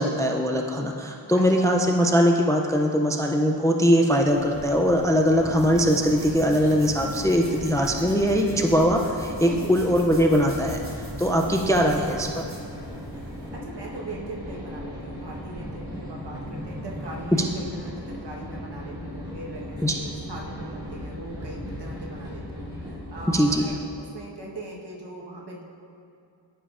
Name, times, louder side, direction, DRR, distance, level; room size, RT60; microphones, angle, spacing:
voice 1, 0.0-10.8 11.2-12.0 19.8-19.9 23.3-23.6, equal, 10° left, 2 dB, 0.4 m, -21 dB
voice 2, 1.3-1.7 9.4-9.7 11.8-12.1 13.5-25.6, right 1 dB, 65° right, -3 dB, 1.3 m, -39 dB
sound 1, 4.3-13.5, right 1 dB, 30° right, 1.2 m, -43 dB
sound 2, 5.3-23.7, equal, 10° right, 1.5 m, -37 dB
14.0 x 5.5 x 2.5 m, 2.4 s
wide cardioid pair, 105°, 44 cm